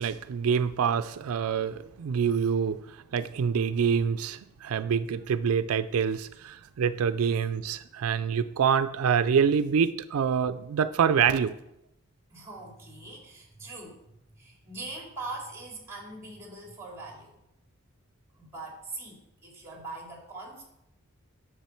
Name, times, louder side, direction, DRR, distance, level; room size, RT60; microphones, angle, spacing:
voice 1, 0.0-2.8 3.1-11.6, right 7 dB, 90° right, 13 dB, 0.4 m, -26 dB
voice 2, 12.3-14.0 14.4-17.4 18.3-20.6, right 2 dB, 15° right, -1 dB, 2.4 m, -42 dB
10.0 x 6.8 x 4.3 m, 0.83 s
head